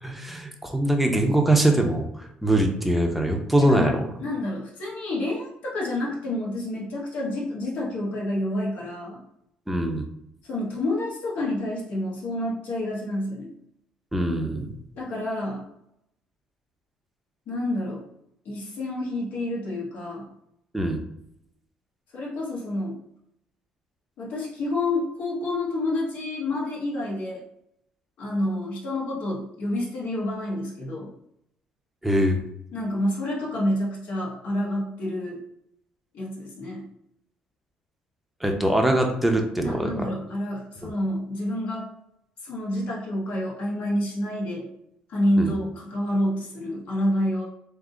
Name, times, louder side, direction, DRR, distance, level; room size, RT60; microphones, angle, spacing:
voice 1, 0.0-3.9 9.7-10.0 14.1-14.7 20.7-21.0 32.0-32.4 38.4-40.1 45.4-45.5, right 1 dB, 5° right, 2 dB, 0.7 m, -22 dB
voice 2, 3.6-3.9 4.2-9.2 10.4-13.5 14.9-15.6 17.5-18.0 18.4-20.3 22.1-23.0 24.2-27.4 28.2-31.1 32.7-35.4 36.1-36.9 39.6-41.9 42.4-44.6 45.1-47.4, left 1 dB, 65° left, -3 dB, 1.5 m, -28 dB
3.6 x 2.6 x 3.8 m, 0.76 s
cardioid pair, 110°, 3 cm